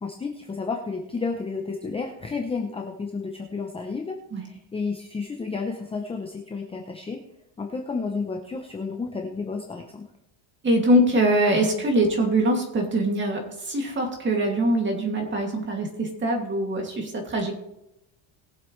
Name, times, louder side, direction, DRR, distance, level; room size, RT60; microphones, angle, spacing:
voice 1, 0.0-7.2 7.6-10.0, left 4 dB, 10° left, 3 dB, 0.7 m, -31 dB
voice 2, 10.6-17.6, right 1 dB, 25° right, 2 dB, 2.5 m, -23 dB
20.5 x 7.6 x 3.2 m, 0.86 s
cardioid pair, 155°, 49 cm